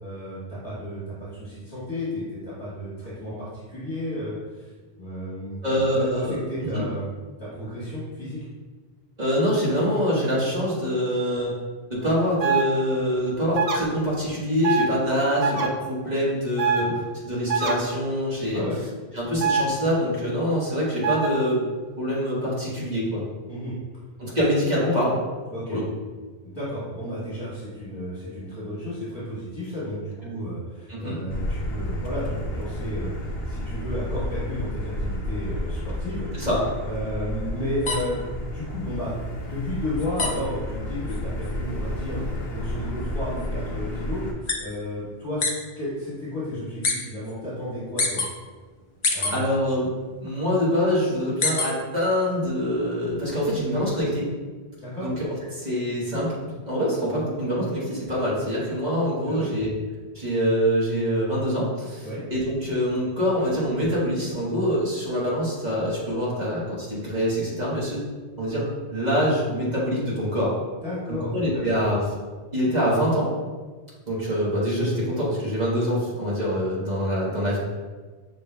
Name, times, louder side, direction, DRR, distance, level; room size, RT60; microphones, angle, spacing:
voice 1, 0.0-1.0 1.3-4.7 5.0-5.6 5.9-7.1 7.4-8.4 16.8-16.9 18.5-18.8 23.5-23.7 25.5-25.8 26.4-36.5 36.8-39.1 39.4-45.4 45.7-48.2 49.1-49.4 54.8-55.1 59.2-59.5 62.0-62.2 70.8-71.7, equal, 25° left, -10 dB, 1.5 m, -32 dB
voice 2, 5.6-6.8 9.2-11.5 11.9-18.6 19.1-21.6 22.0-23.2 24.2-25.2 25.7-25.8 30.9-31.2 36.3-36.6 49.3-49.9 50.2-54.3 55.0-59.7 60.1-68.0 68.4-70.5 71.1-72.0 72.5-73.3 74.1-77.6, equal, 40° right, -6 dB, 1.2 m, -25 dB
sound 1, 12.4-12.6 13.5-13.8 14.6-14.9 15.4-15.7 16.6-16.8 17.5-17.7 19.4-19.6 21.0-21.3, right 6 dB, 55° right, 0.5 m, -23 dB
Motor vehicle (road), 31.3-44.3, left 1 dB, 65° left, 0.9 m, -31 dB
sound 2, 37.8-45.6 45.9-47.0 47.2-48.3 48.7-49.9 50.2-52.0 52.3-53.6, left 3 dB, 50° left, 0.3 m, -29 dB
6.0 x 3.4 x 2.2 m, 1.4 s
omnidirectional pair, 1.1 m